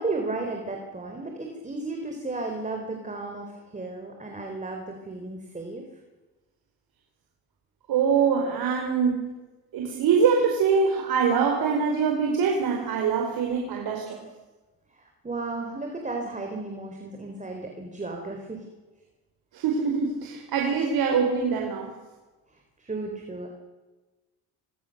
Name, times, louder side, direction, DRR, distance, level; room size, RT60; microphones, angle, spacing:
voice 1, 0.0-5.9 14.9-18.6 22.8-23.5, right 3 dB, 20° right, 2 dB, 4.2 m, -34 dB
voice 2, 7.9-9.3 9.7-14.2 19.5-21.9, right 6 dB, 75° right, 1 dB, 4.7 m, -24 dB
26.5 x 24.5 x 6.7 m, 1.2 s
cardioid pair, 105°, 38 cm